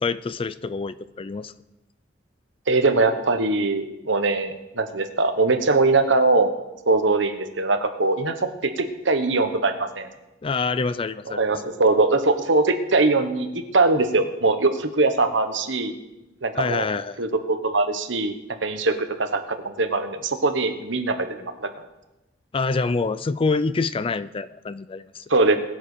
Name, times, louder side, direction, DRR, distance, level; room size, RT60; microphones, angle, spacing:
voice 1, 0.0-1.5 10.4-11.4 16.6-17.2 22.5-25.2, left 4 dB, 30° left, 15 dB, 0.4 m, -26 dB
voice 2, 2.7-6.5 6.8-8.3 8.6-10.1 11.3-15.9 16.4-16.8 17.2-18.3 18.6-21.7 25.3-25.6, right 3 dB, 70° right, 8 dB, 1.3 m, -21 dB
21.0 x 7.4 x 5.0 m, 1.0 s
head